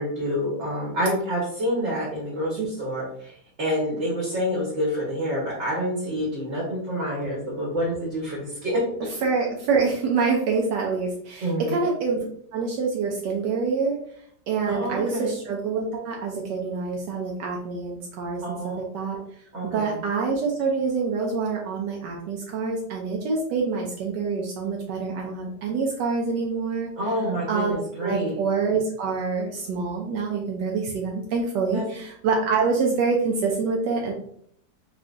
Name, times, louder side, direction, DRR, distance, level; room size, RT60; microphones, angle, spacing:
voice 1, 0.0-8.8 11.4-11.7 14.7-15.3 18.4-18.8 19.5-20.0 27.0-28.4 31.7-31.8, equal, 45° right, -4 dB, 1.2 m, -28 dB
voice 2, 9.2-12.2 12.5-14.0 14.5-19.2 19.6-26.9 27.5-34.1, right 4 dB, 75° right, -1 dB, 1.2 m, -26 dB
3.7 x 3.2 x 2.5 m, 0.63 s
omnidirectional pair, 1.9 m